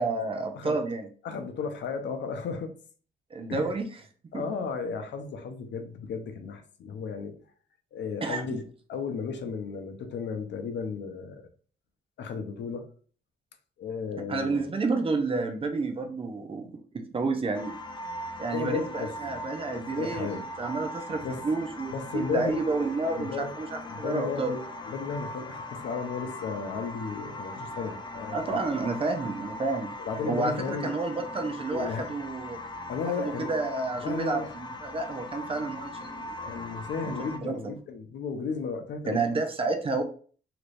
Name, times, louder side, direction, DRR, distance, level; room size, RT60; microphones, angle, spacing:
voice 1, 0.0-1.1 3.3-3.9 4.3-4.4 8.2-8.6 14.3-17.7 18.4-20.3 20.6-24.5 28.3-29.9 30.2-32.6 33.2-36.5 37.0-37.6 39.1-40.0, right 3 dB, 30° right, 5 dB, 0.5 m, -30 dB
voice 2, 1.2-2.8 3.5-3.7 4.3-7.4 7.9-8.6 8.9-11.4 12.2-12.9 13.8-14.6 18.5-19.1 19.7-20.5 21.2-21.4 21.9-22.6 23.1-23.6 23.9-28.6 30.0-30.9 31.7-32.1 32.9-33.5 34.0-34.5 36.4-39.2, left 5 dB, 80° left, 7 dB, 0.6 m, -34 dB
sound 1, 17.5-37.4, left 1 dB, 25° left, 0.4 m, -40 dB
3.2 x 2.9 x 2.5 m, 0.43 s
wide cardioid pair, 150°, 19 cm